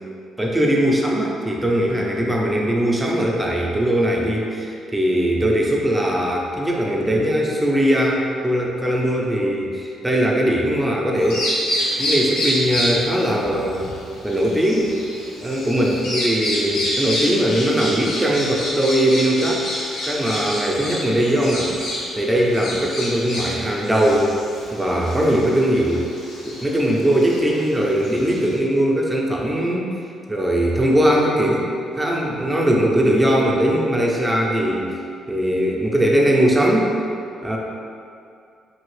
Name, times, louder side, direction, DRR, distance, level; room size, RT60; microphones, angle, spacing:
voice 1, 0.4-11.4 12.0-13.8 14.2-14.9 15.4-19.6 20.0-21.7 22.2-24.3 24.7-26.1 26.4-29.9 30.3-31.7 32.0-35.0 35.3-36.9 37.4-37.6, equal, 10° right, -2 dB, 0.5 m, -20 dB
Bird vocalization bird call bird song, 11.2-28.5, equal, 80° left, 0.8 m, -28 dB
2.9 x 2.7 x 3.1 m, 2.4 s
cardioid pair, 90°, 0 cm